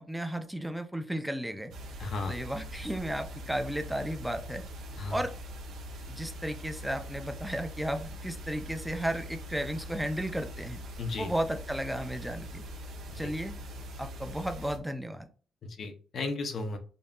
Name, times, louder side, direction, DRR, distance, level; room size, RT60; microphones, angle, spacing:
voice 1, 0.0-1.7 2.3-4.6 5.1-5.3 6.1-10.8 11.2-12.6 13.2-13.5 14.0-15.3, right 1 dB, 5° right, 7 dB, 0.5 m, -34 dB
sound 1, 1.7-14.8, equal, 70° right, 0.8 m, -42 dB
voice 2, 2.0-2.3 5.0-5.2 11.0-11.3 13.2-13.3 15.8-16.8, left 3 dB, 50° left, 6 dB, 0.7 m, -34 dB
5.3 x 2.6 x 2.3 m, 0.39 s
cardioid pair, 120°, 0 cm